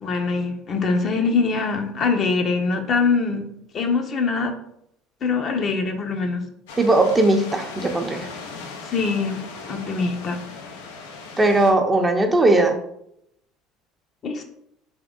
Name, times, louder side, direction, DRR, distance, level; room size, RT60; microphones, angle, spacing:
voice 1, 0.0-3.4 3.7-4.5 5.2-6.5 8.8-9.4 9.7-10.4 14.2-14.4, left 4 dB, 45° left, 4 dB, 0.8 m, -23 dB
sound 1, 6.7-11.7, left 4 dB, 85° left, 0.7 m, -38 dB
voice 2, 6.8-8.3 11.4-12.8, right 2 dB, 20° right, 4 dB, 0.7 m, -18 dB
3.6 x 3.3 x 3.8 m, 0.74 s
supercardioid pair, 85°, 0 cm